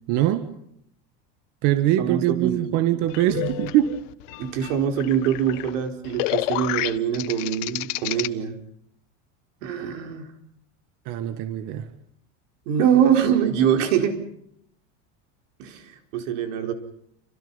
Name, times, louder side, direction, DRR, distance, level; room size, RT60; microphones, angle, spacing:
voice 1, 0.1-0.5 1.6-3.9 11.1-11.9, right 13 dB, 55° right, 10 dB, 1.6 m, -22 dB
voice 2, 2.0-2.7 4.4-8.6 9.6-10.2 12.7-14.1 15.6-16.7, right 9 dB, 90° right, 5 dB, 4.7 m, -23 dB
sound 1, 3.1-8.3, left 19 dB, 85° left, 1.3 m, -30 dB
29.5 x 26.0 x 5.6 m, 0.72 s
cardioid pair, 155°, 37 cm